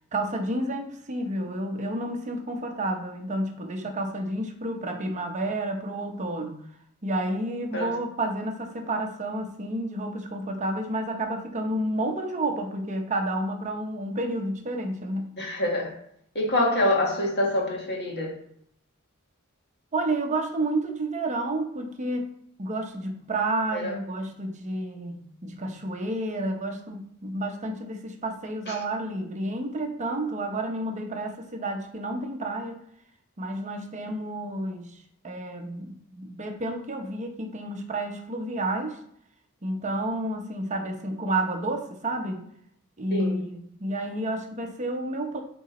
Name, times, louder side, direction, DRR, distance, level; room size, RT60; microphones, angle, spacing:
voice 1, 0.1-6.6 7.0-15.5 19.9-32.8 33.4-39.0 39.6-42.4 43.0-45.4, right 1 dB, 35° right, 4 dB, 0.8 m, -30 dB
voice 2, 15.4-15.9 16.4-18.4 23.7-23.9 28.7-28.8 43.1-43.4, left 1 dB, 50° left, 0 dB, 1.6 m, -26 dB
7.9 x 3.9 x 4.2 m, 0.69 s
head